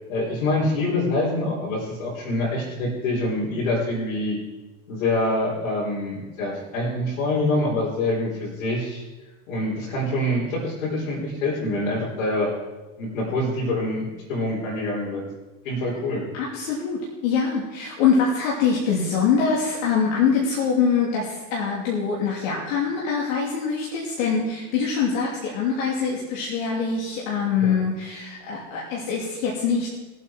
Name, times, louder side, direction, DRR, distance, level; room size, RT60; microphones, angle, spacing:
voice 1, 0.1-4.4 4.9-9.0 9.5-12.5 13.0-15.2 15.6-16.2 27.6-27.7, left 1 dB, 90° left, -6 dB, 4.4 m, -25 dB
voice 2, 16.4-29.9, left 5 dB, 70° left, -3 dB, 3.0 m, -24 dB
20.5 x 8.3 x 4.5 m, 1.1 s
supercardioid pair, 120°, 40 cm